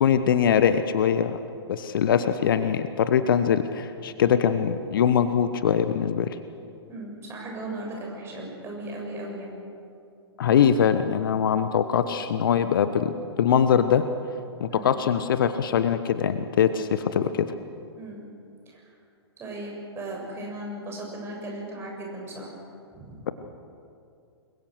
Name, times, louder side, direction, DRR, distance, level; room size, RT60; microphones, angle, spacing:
voice 1, 0.0-1.4 1.7-6.3 10.4-13.1 13.4-14.0 14.6-17.5, left 8 dB, 50° left, 11 dB, 1.1 m, -22 dB
voice 2, 6.9-9.5 14.7-14.9 17.9-18.3 18.7-18.9 19.4-22.5 22.9-23.2, right 1 dB, 15° right, -1 dB, 7.1 m, -37 dB
29.0 x 22.5 x 6.5 m, 2.4 s
figure-of-eight pair, 110°, 14 cm